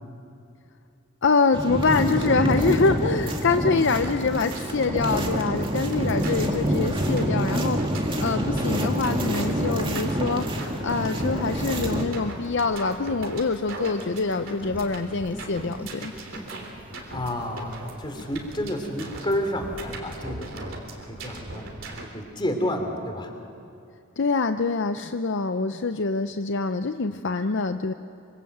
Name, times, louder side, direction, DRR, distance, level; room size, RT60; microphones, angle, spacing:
voice 1, 1.2-7.8 8.2-16.1 24.2-27.9, left 4 dB, 55° left, 9 dB, 0.6 m, -25 dB
sound 1, 1.5-12.0, equal, 25° right, 2.3 m, -26 dB
sound 2, 3.9-22.1, right 1 dB, 60° right, 3.5 m, -39 dB
sound 3, 12.0-20.0, equal, 10° right, 2.7 m, -46 dB
voice 2, 17.1-17.7 18.0-20.8 21.1-21.7 22.1-23.3, left 1 dB, 20° left, 5 dB, 2.9 m, -30 dB
25.5 x 25.5 x 7.9 m, 2.5 s
head